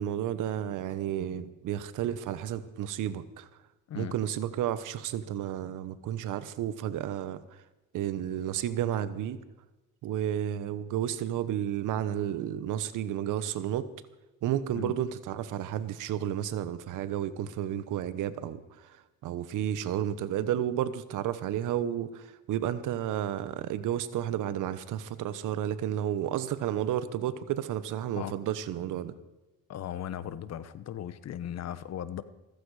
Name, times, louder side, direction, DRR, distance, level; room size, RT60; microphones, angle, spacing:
voice 1, 0.0-3.5 3.9-7.4 7.9-9.4 10.0-13.9 14.4-18.6 19.2-29.1, right 11 dB, 70° right, 1.1 m, -32 dB
voice 2, 29.7-32.2, left 10 dB, 55° left, 1.0 m, -37 dB
15.5 x 14.5 x 4.9 m
cardioid pair, 110°, 32 cm